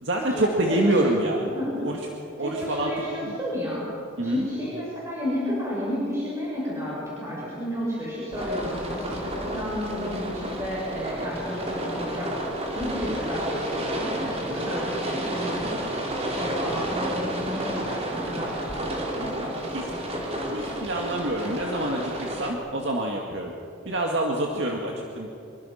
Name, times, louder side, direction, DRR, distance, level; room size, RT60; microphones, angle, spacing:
voice 1, 0.0-3.4 4.2-4.5 19.7-19.9 20.4-23.5 23.9-25.3, right 1 dB, 60° right, -1 dB, 2.2 m, -27 dB
voice 2, 0.8-1.2 1.5-1.7 2.4-3.8 4.2-12.3 12.7-15.7 16.3-20.6, equal, 15° right, -8 dB, 7.0 m, -32 dB
sound 1, 8.3-22.5, right 1 dB, 30° right, 3.6 m, -31 dB
26.0 x 23.5 x 5.9 m, 2.6 s
head